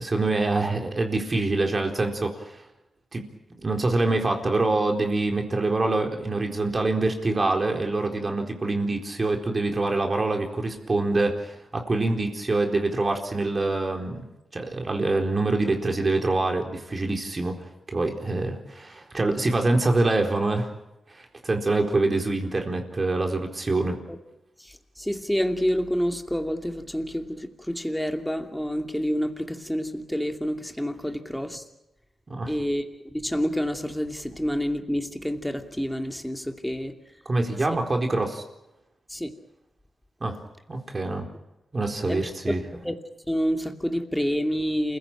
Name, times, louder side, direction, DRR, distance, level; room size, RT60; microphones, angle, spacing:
voice 1, 0.0-2.6 3.1-3.2 3.6-14.2 14.5-17.6 17.9-20.7 21.1-24.0 32.3-32.5 37.3-38.4 40.2-40.4 40.7-41.3 41.7-42.6, right 2 dB, 35° right, 3 dB, 4.1 m, -25 dB
voice 2, 24.6-31.6 32.5-36.9 39.1-39.3 42.1-42.5 42.8-42.9 43.3-45.0, equal, 5° left, 5 dB, 2.5 m, -28 dB
28.5 x 16.0 x 9.0 m, 0.93 s
cardioid pair, 80°, 0 cm